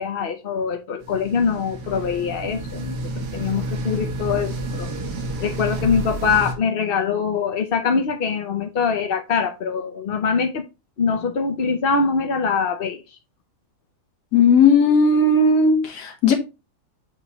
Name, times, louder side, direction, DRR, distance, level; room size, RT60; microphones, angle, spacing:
voice 1, 0.0-3.0 3.3-4.9 5.4-10.6 11.0-13.2, left 5 dB, 55° left, 0.6 m, -23 dB
sound 1, 1.0-6.5, right 1 dB, 75° right, 1.8 m, -30 dB
voice 2, 14.3-16.3, left 3 dB, 80° left, 1.7 m, -16 dB
7.2 x 2.9 x 5.5 m
omnidirectional pair, 1.8 m